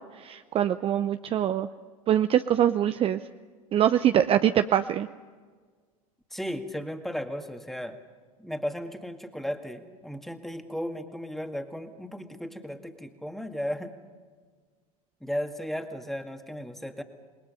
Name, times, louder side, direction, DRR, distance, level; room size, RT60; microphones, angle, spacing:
voice 1, 0.2-1.7 2.1-3.2 3.7-5.1, right 10 dB, 30° right, 10 dB, 0.7 m, -23 dB
voice 2, 6.3-8.0 8.4-13.9 15.2-17.0, equal, ahead, 6 dB, 2.1 m, -35 dB
28.0 x 21.5 x 5.5 m, 1.5 s
figure-of-eight pair, 80°, 19 cm